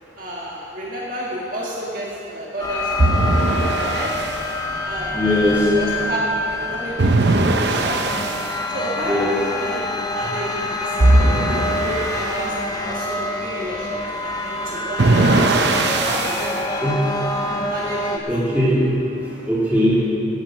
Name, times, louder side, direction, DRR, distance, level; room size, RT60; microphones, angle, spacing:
voice 1, 0.2-4.1 4.8-8.0 8.7-17.2 17.7-18.2, right 1 dB, 50° right, -5 dB, 1.7 m, -31 dB
sound 1, 2.6-18.2, left 2 dB, 20° left, 0.9 m, -26 dB
sound 2, 3.0-4.4 7.0-8.5 11.0-12.4 15.0-16.5, right 2 dB, 75° right, 0.8 m, -19 dB
voice 2, 5.1-5.6 9.1-9.3 16.8-17.0 18.3-18.9 19.5-20.0, equal, 10° right, -9 dB, 3.5 m, -19 dB
16.5 x 9.0 x 6.5 m, 2.8 s
head